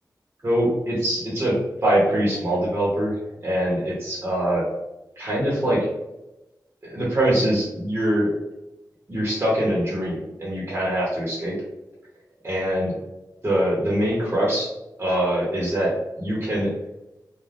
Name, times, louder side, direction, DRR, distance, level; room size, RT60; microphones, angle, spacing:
voice 1, 0.4-3.2 3.4-4.7 5.2-5.9 6.8-8.3 9.1-11.6 12.4-12.9 13.4-14.7 15.0-16.7, right 1 dB, 35° right, -6 dB, 0.9 m, -23 dB
2.4 x 2.2 x 3.3 m, 0.97 s
wide cardioid pair, 85°, 7 cm